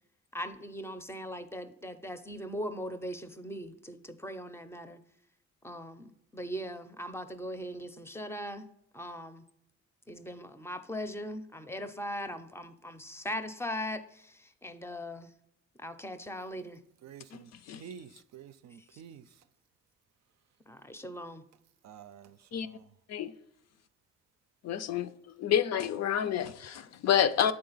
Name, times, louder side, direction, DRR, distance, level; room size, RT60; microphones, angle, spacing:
voice 1, 0.3-5.0 5.6-8.6 8.9-9.4 10.1-15.3 15.8-16.8 18.9-19.0 20.7-21.4, equal, 10° left, 0.5 m, -40 dB
voice 2, 17.0-17.5 17.8-19.4 21.8-22.9, right 8 dB, 60° right, 0.5 m, -50 dB
voice 3, 24.6-25.1 25.4-27.5, left 9 dB, 60° left, 0.5 m, -28 dB
8.7 x 3.8 x 3.9 m
cardioid pair, 90°, 30 cm